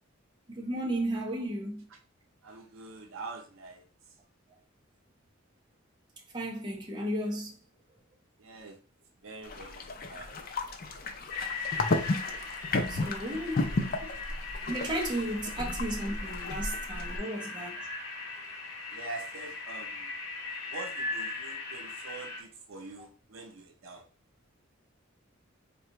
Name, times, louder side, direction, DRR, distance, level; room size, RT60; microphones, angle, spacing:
voice 1, 0.5-1.9 6.3-7.5 12.9-13.7 14.7-17.8, right 1 dB, 20° right, 0.7 m, -34 dB
voice 2, 2.4-4.2 8.4-8.8 9.2-10.5 13.3-13.7 14.0-14.1 17.7-17.8 18.9-20.1 20.7-24.1, right 3 dB, 80° right, 0.6 m, -45 dB
sound 1, 9.4-17.2, left 2 dB, 45° left, 0.5 m, -33 dB
sound 2, 11.3-22.4, left 3 dB, 65° left, 0.9 m, -39 dB
4.1 x 2.3 x 2.8 m
head